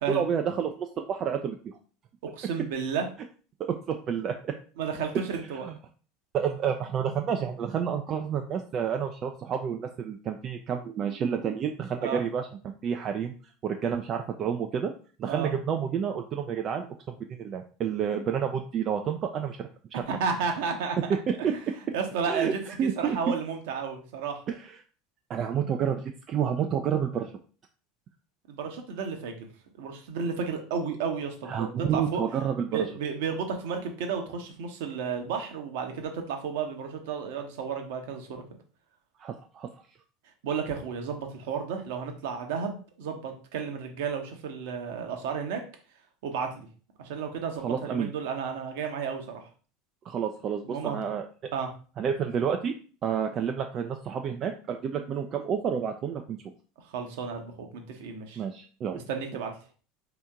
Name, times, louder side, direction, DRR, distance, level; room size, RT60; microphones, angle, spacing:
voice 1, 0.1-1.7 3.6-4.5 5.6-5.8 6.3-12.5 12.8-13.3 13.6-14.9 15.2-19.7 20.0-20.1 21.1-21.2 21.4-21.5 22.3-22.5 22.8-23.2 24.6-24.7 25.3-27.3 31.5-32.9 39.2-39.7 47.6-48.1 50.1-51.2 52.0-52.7 53.0-56.4 58.4-59.0, right 8 dB, 40° right, 4 dB, 0.4 m, -29 dB
voice 2, 2.2-3.0 4.8-5.7 12.0-12.2 15.3-15.5 20.1-21.0 21.5-21.6 21.9-24.4 28.5-29.5 29.8-32.2 32.7-38.4 40.4-45.6 46.2-46.7 47.0-49.4 50.6-51.0 51.5-51.7 56.9-58.4 59.1-59.5, right 6 dB, 60° right, 4 dB, 0.9 m, -32 dB
4.3 x 2.9 x 3.6 m, 0.39 s
figure-of-eight pair, 75°, 0 cm